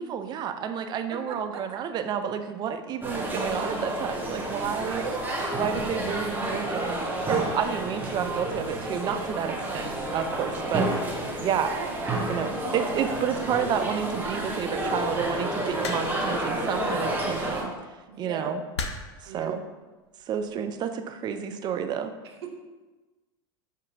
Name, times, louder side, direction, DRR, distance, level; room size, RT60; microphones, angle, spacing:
voice 1, 0.0-5.1 5.6-10.9 11.2-11.7 12.3-17.7 18.2-18.6 19.2-19.6 20.3-22.1, right 8 dB, 30° right, 8 dB, 0.4 m, -30 dB
voice 2, 1.1-1.6 4.8-5.4 11.6-12.6 18.1-18.5 19.3-19.6 22.4-22.6, right 6 dB, 70° right, 4 dB, 0.6 m, -38 dB
sound 1, 3.0-17.6, right 1 dB, 15° right, 0.8 m, -30 dB
sound 2, 15.8-16.4 17.6-17.8 18.8-19.2 20.2-20.5, left 4 dB, 80° left, 0.4 m, -34 dB
6.2 x 2.6 x 2.6 m, 1.2 s
hypercardioid pair, 90°, 14 cm